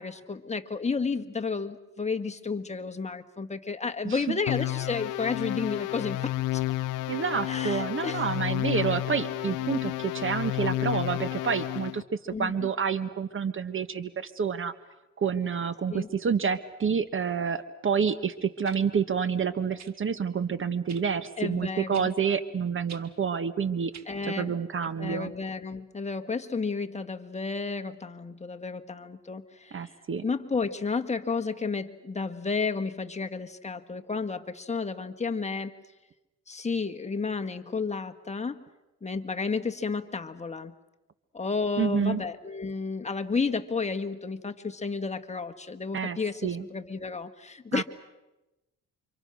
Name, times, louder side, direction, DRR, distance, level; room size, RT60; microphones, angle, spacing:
voice 1, 0.0-6.3 7.5-8.2 12.3-12.7 15.9-16.1 21.4-22.1 24.1-24.5 25.0-29.9 30.2-35.7 36.5-38.6 39.0-40.7 41.3-47.8, left 4 dB, 20° left, 5 dB, 1.7 m, -32 dB
voice 2, 4.0-4.4 7.1-14.7 15.2-23.9 24.3-25.3 29.7-30.2 41.8-42.2 45.9-46.6 47.7-47.8, right 6 dB, 45° right, 13 dB, 1.5 m, -28 dB
sound 1, 4.5-12.0, left 16 dB, 90° left, 0.8 m, -31 dB
sound 2, 17.6-17.7 18.7-18.8 19.8-20.0 20.9-21.1 21.9-22.1 22.9-23.1 23.9-24.1 25.0-25.1, right 7 dB, 65° right, 2.0 m, -46 dB
29.5 x 26.5 x 6.4 m, 0.99 s
cardioid pair, 90°, 30 cm